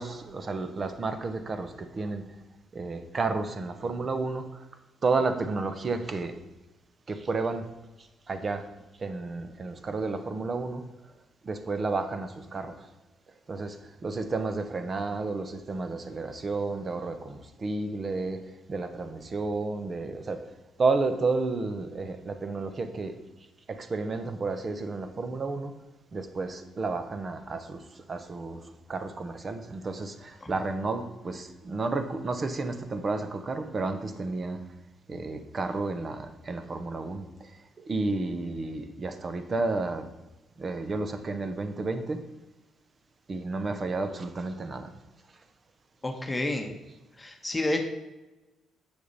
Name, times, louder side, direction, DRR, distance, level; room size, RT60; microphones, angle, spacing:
voice 1, 0.0-2.3 2.7-4.6 5.0-6.4 7.1-7.7 8.3-8.7 9.0-10.8 11.4-12.9 13.5-18.4 18.7-20.5 20.8-23.2 23.7-25.7 26.1-34.6 35.1-37.6 37.8-40.1 40.6-42.2 43.3-44.9, right 3 dB, 40° right, 8 dB, 1.0 m, -31 dB
voice 2, 46.0-46.8 47.2-47.8, left 2 dB, 15° left, 3 dB, 1.1 m, -30 dB
8.1 x 6.4 x 4.1 m, 1.0 s
cardioid pair, 90°, 0 cm